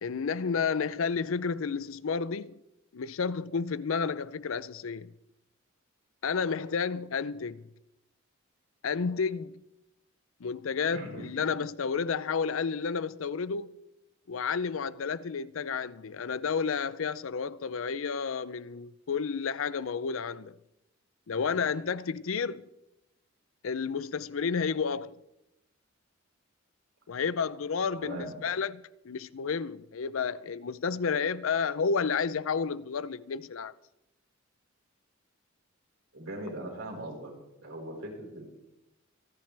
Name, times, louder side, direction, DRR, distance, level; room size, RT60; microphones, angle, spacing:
voice 1, 0.0-2.6 2.9-5.1 6.2-7.7 8.8-9.6 10.4-13.7 14.3-20.6 21.3-22.7 23.6-25.2 27.1-33.7, left 5 dB, 85° left, 0.5 m, -31 dB
voice 2, 10.9-11.3 28.0-28.3 36.1-37.3 37.6-38.4, right 1 dB, 90° right, 4.7 m, -39 dB
26.0 x 10.5 x 3.4 m
head